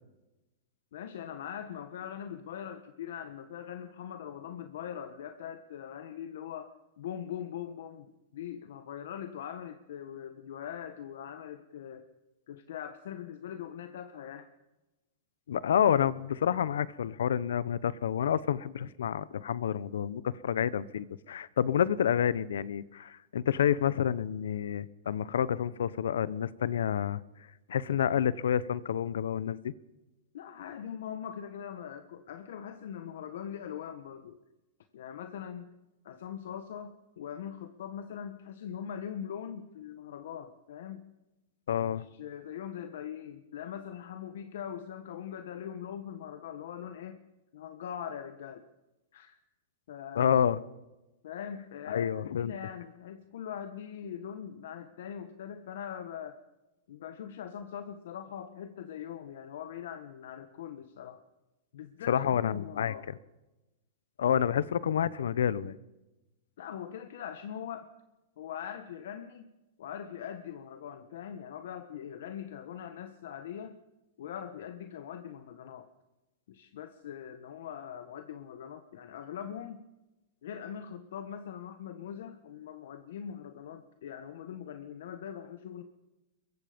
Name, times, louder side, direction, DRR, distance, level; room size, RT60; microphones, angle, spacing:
voice 1, 0.9-12.1 12.5-14.5 30.3-34.4 34.9-35.7 36.0-41.0 41.8-47.2 47.5-48.6 49.1-49.3 49.9-50.3 51.2-56.4 56.9-61.2 61.7-63.1 66.6-67.9 68.4-69.5 69.8-73.8 74.2-75.9 76.5-79.8 80.4-85.8, left 9 dB, 70° left, 8 dB, 1.5 m, -42 dB
voice 2, 15.5-27.2 27.7-29.7 41.7-42.0 50.1-50.6 51.9-52.5 62.1-62.9 64.2-65.8, left 9 dB, 90° left, 19 dB, 1.0 m, -29 dB
23.0 x 22.0 x 5.3 m, 1.0 s
supercardioid pair, 150°, 0 cm